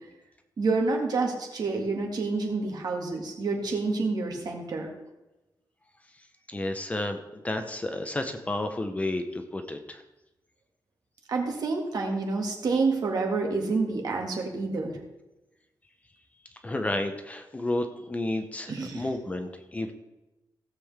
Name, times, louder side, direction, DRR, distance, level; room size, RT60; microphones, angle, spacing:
voice 1, 0.6-4.9 11.3-15.0 18.7-19.0, right 3 dB, 60° right, 1 dB, 2.0 m, -28 dB
voice 2, 6.5-10.0 16.6-19.9, left 1 dB, 20° left, 6 dB, 0.8 m, -31 dB
16.5 x 7.7 x 3.5 m, 1.0 s
wide cardioid pair, 175°, 8 cm